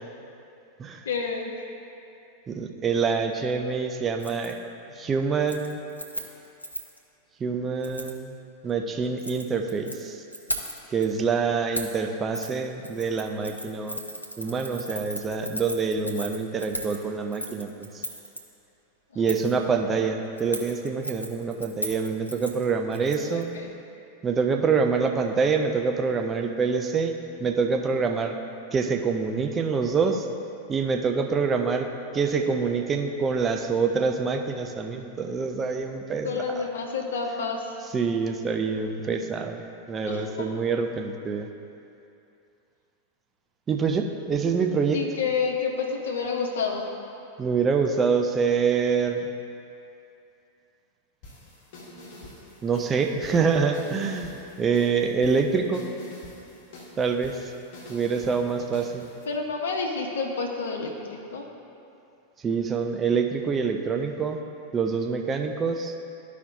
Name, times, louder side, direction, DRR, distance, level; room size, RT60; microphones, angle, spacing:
voice 1, 1.0-1.5 19.1-19.3 23.3-23.7 36.2-37.8 40.0-40.5 44.9-46.9 59.3-61.4, left 5 dB, 65° left, 1 dB, 1.0 m, -29 dB
voice 2, 2.5-4.6 4.9-5.8 7.4-8.3 8.6-10.2 10.9-14.0 14.4-18.0 19.2-23.5 24.2-27.1 27.4-28.4 28.7-30.3 30.7-36.6 37.9-41.5 43.7-45.0 47.4-49.3 52.6-55.9 57.0-57.5 57.9-59.1 62.4-64.4 64.7-65.9, right 5 dB, 20° right, 4 dB, 0.5 m, -26 dB
Keys jangling, 4.2-4.5 4.9-5.1 5.4-7.0 7.8-8.2 9.0-10.0 10.3-11.0 11.7-12.0 12.3-12.5 12.8-18.4 19.3-19.6 20.4-23.4 23.7-23.8, equal, 85° left, 0.6 m, -36 dB
sound 1, 51.2-59.3, left 1 dB, 45° left, 1.6 m, -46 dB
13.5 x 5.0 x 2.7 m, 2.6 s
figure-of-eight pair, 90°, 0 cm